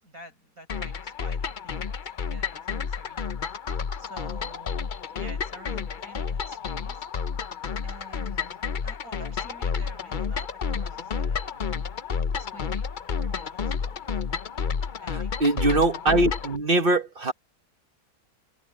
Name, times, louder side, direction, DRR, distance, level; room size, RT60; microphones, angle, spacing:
voice 1, 0.0-3.3 4.0-4.8 5.1-7.1 7.8-11.7 12.4-12.9 13.2-14.1 15.0-15.6, right 1 dB, 55° right, 8.4 m, -49 dB
sound 1, 0.7-16.6, left 6 dB, 50° left, 0.6 m, -31 dB
voice 2, 15.1-17.3, right 2 dB, 35° right, 1.1 m, -22 dB
omnidirectional pair, 1.8 m